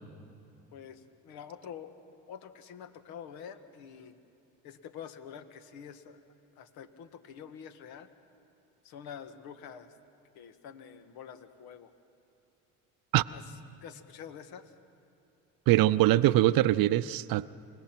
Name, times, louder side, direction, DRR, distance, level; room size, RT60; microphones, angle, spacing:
voice 1, 0.7-1.9 2.3-4.1 4.6-6.2 6.6-8.1 8.8-9.9 10.3-11.9 13.3-13.4 13.8-14.7, left 8 dB, 75° left, 9 dB, 1.5 m, -47 dB
voice 2, 15.7-17.5, right 15 dB, 65° right, 18 dB, 0.6 m, -23 dB
27.5 x 17.5 x 6.0 m, 2.7 s
supercardioid pair, 65°, 37 cm